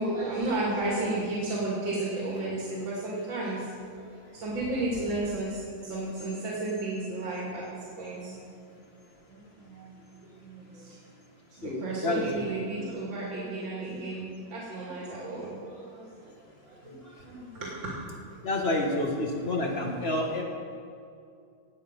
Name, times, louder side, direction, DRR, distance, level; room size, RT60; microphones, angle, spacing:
voice 1, 0.0-8.4 9.3-11.0 11.5-17.9, right 2 dB, 80° right, -6 dB, 3.1 m, -33 dB
voice 2, 11.6-12.4 17.4-17.5 18.4-20.4, left 2 dB, 35° left, 1 dB, 1.8 m, -29 dB
17.5 x 8.9 x 5.3 m, 2.3 s
omnidirectional pair, 2.1 m